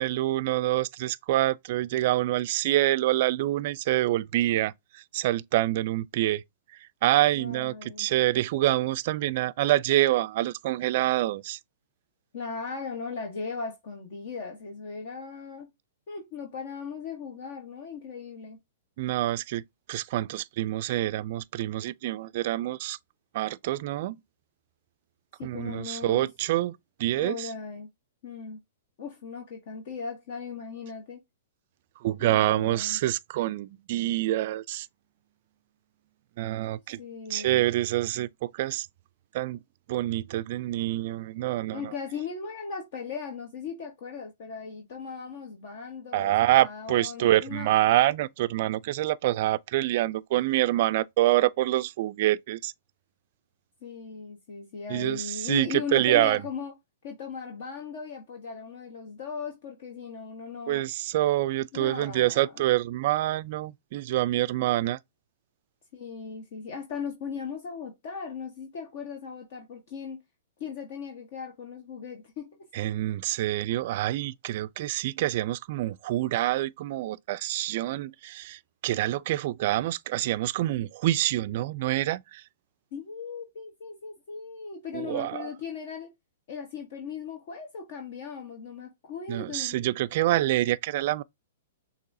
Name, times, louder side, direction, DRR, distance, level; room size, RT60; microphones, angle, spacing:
voice 1, 0.0-6.4 6.8-11.6 19.0-23.0 23.3-24.2 25.4-27.5 32.0-34.9 36.4-37.0 37.3-38.9 39.3-39.6 39.9-41.9 46.1-52.7 54.9-56.4 60.7-65.0 72.7-82.4 84.9-85.5 89.3-91.2, right 15 dB, 50° right, 0.3 m, -26 dB
voice 2, 7.3-8.1 12.3-15.7 16.1-18.6 25.4-26.3 27.2-27.9 28.2-28.6 29.0-31.2 32.2-33.0 37.0-37.6 41.7-46.3 46.6-47.7 53.8-56.7 57.0-60.9 61.7-62.6 65.9-70.2 70.6-72.6 82.9-86.1 86.5-89.8, left 5 dB, 55° left, 1.2 m, -38 dB
6.7 x 2.8 x 2.7 m
hypercardioid pair, 135°, 0 cm